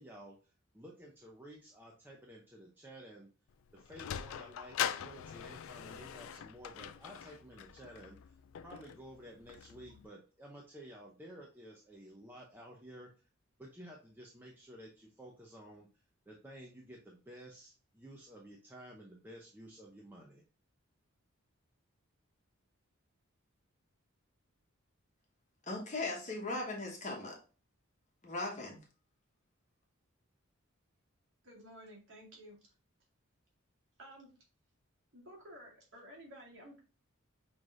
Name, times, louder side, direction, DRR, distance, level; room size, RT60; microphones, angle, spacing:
voice 1, 0.0-3.3 3.7-8.4 8.6-13.1 13.6-20.4, right 1 dB, 10° right, -2 dB, 0.6 m, -53 dB
Sliding door, 3.5-10.1, left 9 dB, 65° left, 0.3 m, -42 dB
voice 2, 25.6-27.4 28.2-28.8, left 2 dB, 35° left, 0 dB, 1.2 m, -38 dB
voice 3, 31.4-32.6 34.0-34.3 35.1-36.8, equal, 60° right, -3 dB, 2.0 m, -53 dB
5.7 x 3.2 x 2.5 m, 0.34 s
head